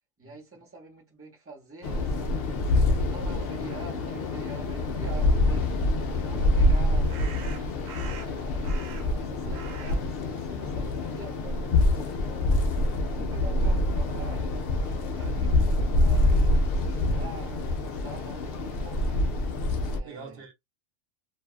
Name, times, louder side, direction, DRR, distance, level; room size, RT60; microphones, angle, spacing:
voice 1, 0.2-5.7 6.1-12.5 12.9-14.5 15.1-19.2 19.8-20.4, right 3 dB, 15° right, 0.6 m, -46 dB
sound 1, 1.8-20.0, left 2 dB, 60° left, 0.6 m, -26 dB
voice 2, 6.2-6.6 15.2-15.5 20.0-20.5, right 4 dB, 55° right, 1.0 m, -45 dB
sound 2, 7.1-9.2 9.5-11.6, right 8 dB, 85° right, 1.0 m, -45 dB
2.6 x 2.3 x 2.4 m
omnidirectional pair, 1.3 m